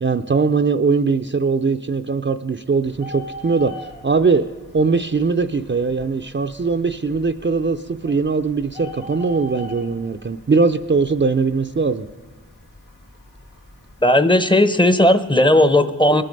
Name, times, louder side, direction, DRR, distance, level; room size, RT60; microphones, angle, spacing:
voice 1, 0.0-4.5 4.7-12.1, right 4 dB, 35° right, 8 dB, 0.5 m, -20 dB
Bird, 2.8-14.0, left 1 dB, 70° left, 2.6 m, -41 dB
voice 2, 14.0-16.2, left 1 dB, 15° left, 11 dB, 0.7 m, -15 dB
20.5 x 7.6 x 5.3 m, 1.3 s
wide cardioid pair, 45°, 33 cm